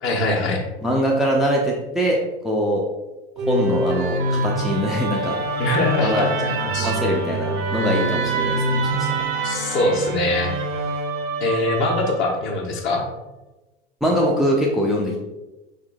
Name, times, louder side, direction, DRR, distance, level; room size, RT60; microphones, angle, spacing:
voice 1, 0.0-0.6 5.6-6.9 9.4-10.5 11.4-13.0, left 2 dB, 40° left, -1 dB, 1.0 m, -22 dB
voice 2, 0.8-2.2 2.4-2.8 3.5-5.4 6.0-6.3 6.8-9.2 14.0-15.2, equal, ahead, -2 dB, 0.4 m, -22 dB
Musical instrument, 3.4-12.6, right 2 dB, 45° right, 0.6 m, -25 dB
4.5 x 3.6 x 2.2 m, 1.1 s
figure-of-eight pair, 75°, 30 cm